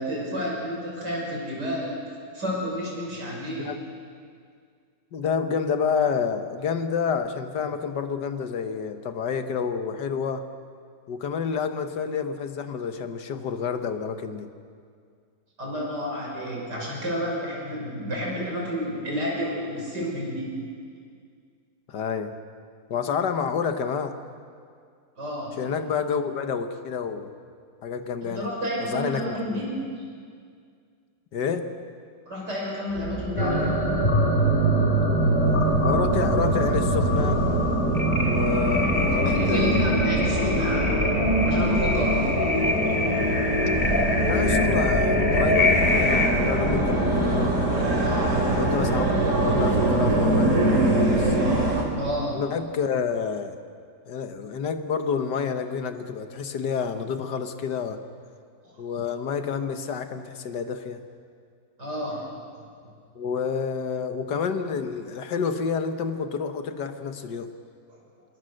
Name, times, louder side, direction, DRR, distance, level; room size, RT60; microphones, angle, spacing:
voice 1, 0.0-1.9 2.3-3.7 15.6-20.5 25.2-25.6 28.2-29.7 32.3-33.8 39.1-41.0 41.4-42.3 48.0-48.6 51.9-52.4 58.6-58.7 61.8-62.3 67.9-68.0, equal, 85° right, -3 dB, 6.6 m, -31 dB
voice 2, 5.1-10.5 11.1-14.5 21.9-22.3 22.9-24.2 25.6-27.3 27.8-28.5 28.9-29.7 31.3-31.7 35.8-37.4 38.3-40.0 40.2-40.6 44.2-47.5 48.5-51.4 52.3-53.6 54.1-58.0 58.8-61.0 63.2-67.5, left 6 dB, 90° left, 8 dB, 1.9 m, -29 dB
sound 1, 32.9-51.8, right 1 dB, 45° right, 3.7 m, -24 dB
sound 2, 33.4-46.3, equal, 30° left, 2.1 m, -24 dB
26.5 x 21.0 x 6.6 m, 2.2 s
omnidirectional pair, 1.8 m